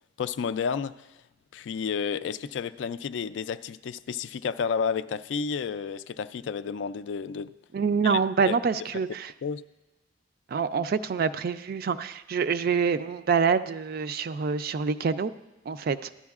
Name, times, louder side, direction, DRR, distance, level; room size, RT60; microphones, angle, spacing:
voice 1, 0.2-1.2 1.5-7.5 8.0-8.6 9.4-9.6, left 6 dB, 75° left, 13 dB, 0.3 m, -31 dB
voice 2, 7.7-9.3 10.5-15.3 15.7-16.1, right 5 dB, 55° right, 12 dB, 0.3 m, -26 dB
13.5 x 10.0 x 2.4 m, 1.0 s
head